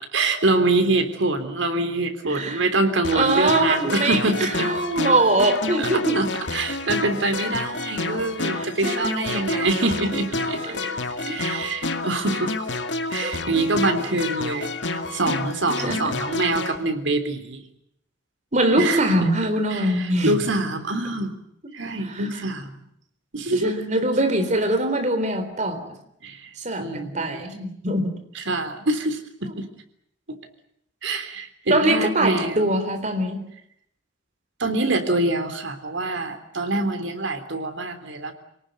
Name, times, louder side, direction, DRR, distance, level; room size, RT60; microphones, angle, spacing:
voice 1, 0.1-4.7 5.8-5.9 6.2-10.6 11.3-12.5 13.1-17.6 18.8-19.3 19.7-19.8 20.2-21.3 21.7-22.8 23.3-23.7 26.2-26.5 26.8-27.6 28.4-29.2 29.6-29.7 31.0-32.6 34.6-38.3, right 2 dB, 85° right, 8 dB, 3.5 m, -25 dB
voice 2, 2.3-2.7 3.1-6.2 8.4-9.7 10.5-11.0 11.3-11.4 13.2-13.4 15.8-16.1 18.5-20.4 23.5-26.0 26.6-28.2 31.7-33.5, right 1 dB, 40° right, 7 dB, 3.8 m, -23 dB
sound 1, 3.0-16.8, left 2 dB, 75° left, 2.2 m, -29 dB
27.5 x 18.5 x 9.4 m, 0.75 s
head